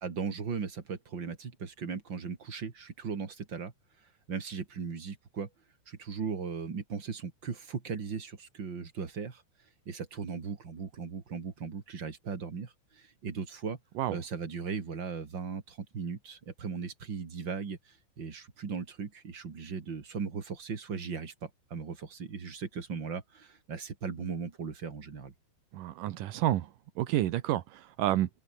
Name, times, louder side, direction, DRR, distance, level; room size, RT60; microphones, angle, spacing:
voice 1, 0.0-3.7 4.3-5.5 5.9-9.4 9.9-13.8 14.1-25.3, right 5 dB, 35° right, 2.3 m, -38 dB
voice 2, 25.7-26.7 27.0-28.3, right 13 dB, 80° right, 1.9 m, -29 dB
omnidirectional pair, 5.5 m